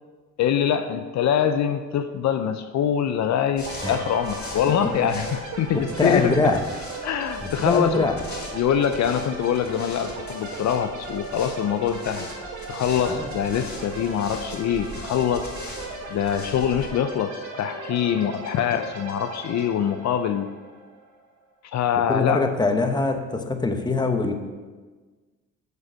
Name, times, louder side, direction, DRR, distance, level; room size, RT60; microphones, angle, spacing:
voice 1, 0.4-6.4 7.0-8.1 8.5-12.3 12.7-15.5 16.1-20.5 21.6-22.4, left 9 dB, 65° left, 9 dB, 0.5 m, -24 dB
sound 1, 3.5-16.9, left 1 dB, 35° left, 3.1 m, -40 dB
sound 2, 3.6-21.3, right 3 dB, 70° right, 1.8 m, -37 dB
voice 2, 6.0-6.6 7.6-8.2 13.1-13.3 22.1-24.3, left 3 dB, 15° left, 5 dB, 1.0 m, -23 dB
7.7 x 5.3 x 6.3 m, 1.3 s
cardioid pair, 90°, 30 cm